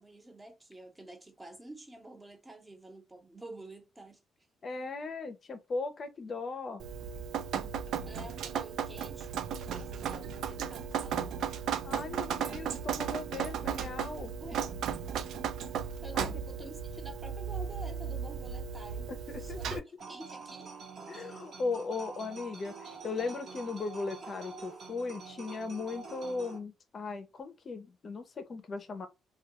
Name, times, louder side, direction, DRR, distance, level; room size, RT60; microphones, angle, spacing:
voice 1, 0.0-4.2 8.0-9.3 9.7-11.4 14.4-14.8 16.0-19.1 19.4-19.8 20.1-20.7, right 1 dB, 20° right, 0.8 m, -49 dB
voice 2, 4.6-6.8 11.8-14.3 16.1-16.3 19.1-19.8 21.1-29.1, left 4 dB, 45° left, 0.5 m, -38 dB
Drip, 6.8-19.8, right 8 dB, 75° right, 0.3 m, -35 dB
sound 1, 20.0-26.6, right 4 dB, 55° right, 0.7 m, -46 dB
2.2 x 2.2 x 2.9 m
cardioid pair, 90°, 0 cm